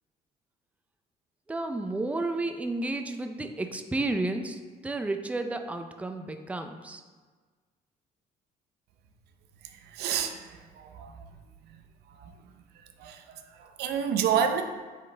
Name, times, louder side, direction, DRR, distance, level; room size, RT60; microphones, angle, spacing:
voice 1, 1.5-7.0, right 2 dB, 10° right, 6 dB, 0.5 m, -32 dB
voice 2, 9.9-11.1 12.2-12.3 13.0-13.2 13.6-14.6, right 8 dB, 75° right, 7 dB, 0.6 m, -29 dB
8.3 x 4.0 x 3.4 m, 1.4 s
cardioid pair, 110°, 17 cm